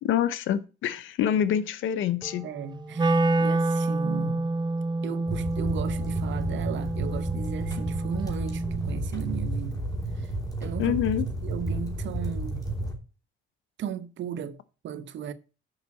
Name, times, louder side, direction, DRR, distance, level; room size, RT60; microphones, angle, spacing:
voice 1, 0.0-2.5 10.8-11.3, left 10 dB, 80° left, 0.7 m, -26 dB
sound 1, 2.2-9.5, right 2 dB, ahead, 3.0 m, -50 dB
voice 2, 2.4-4.5 5.0-9.9 10.2-10.3 10.6-11.0 11.4-12.7 13.8-15.3, right 7 dB, 70° right, 1.0 m, -36 dB
Wind instrument woodwind instrument, 2.9-9.0, right 2 dB, 20° right, 0.9 m, -28 dB
sound 2, 5.3-12.9, right 1 dB, 20° left, 2.8 m, -31 dB
6.9 x 5.5 x 7.3 m
cardioid pair, 90°, 20 cm